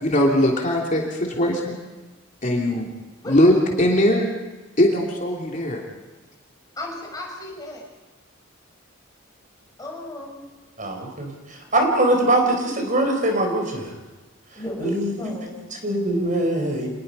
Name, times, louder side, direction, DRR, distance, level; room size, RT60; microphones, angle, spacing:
voice 1, 0.0-1.7 2.4-2.9 3.2-4.3 4.8-5.8, left 1 dB, 40° left, -1 dB, 3.1 m, -20 dB
voice 2, 6.8-7.8 9.8-10.4 14.6-15.7, left 1 dB, 20° left, -1 dB, 6.2 m, -34 dB
voice 3, 10.8-14.0 14.5-16.9, right 1 dB, 40° right, 3 dB, 4.4 m, -23 dB
27.0 x 21.0 x 5.6 m, 1.2 s
head